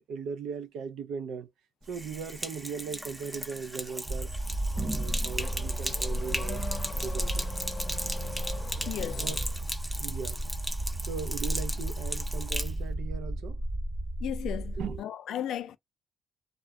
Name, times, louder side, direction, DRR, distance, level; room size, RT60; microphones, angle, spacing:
voice 1, 0.0-1.5 1.9-4.3 4.7-6.6 7.0-7.5 9.2-9.4 10.0-10.4 11.1-13.6 14.8-15.0, right 6 dB, 80° right, 0.4 m, -38 dB
Sink (filling or washing), 1.8-12.8, right 1 dB, 10° right, 0.5 m, -37 dB
sound 1, 4.1-15.0, right 1 dB, 40° right, 0.8 m, -33 dB
Car / Accelerating revving vroom, 4.6-9.7, left 3 dB, 35° left, 0.7 m, -43 dB
voice 2, 8.9-9.2 14.2-15.8, left 11 dB, 75° left, 0.3 m, -35 dB
2.4 x 2.0 x 2.8 m
cardioid pair, 90°, 0 cm